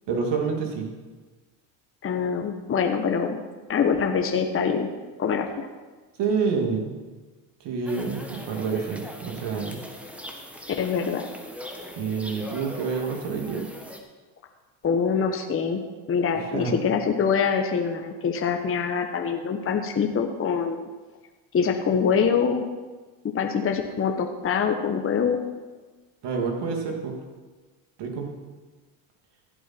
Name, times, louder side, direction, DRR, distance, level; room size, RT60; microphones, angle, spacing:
voice 1, 0.1-0.9 6.2-7.0 7.6-9.8 12.0-13.6 16.3-16.7 26.2-27.1 28.0-28.3, right 5 dB, 55° right, 1 dB, 2.8 m, -28 dB
voice 2, 2.0-3.4 3.7-4.9 5.2-5.7 10.8-11.3 14.8-15.8 16.1-20.8 21.5-22.6 23.3-25.4, left 6 dB, 25° left, 4 dB, 1.1 m, -24 dB
sound 1, 7.9-14.0, equal, 5° right, 1.5 m, -41 dB
15.0 x 8.3 x 4.5 m, 1.3 s
supercardioid pair, 95°, 49 cm